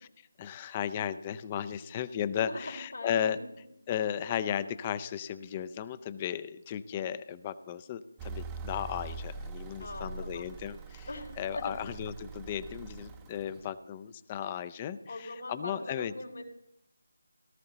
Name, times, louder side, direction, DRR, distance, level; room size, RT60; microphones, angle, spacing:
voice 1, 0.4-3.4 3.9-11.1 11.4-16.1, left 9 dB, 20° left, 14 dB, 0.5 m, -35 dB
voice 2, 2.3-3.4 9.8-10.5 11.1-11.8 15.1-16.4, left 2 dB, 75° left, -5 dB, 3.2 m, -41 dB
sound 1, 8.2-13.7, right 4 dB, 15° right, 0.7 m, -43 dB
17.5 x 12.5 x 4.0 m, 0.79 s
figure-of-eight pair, 160°, 0 cm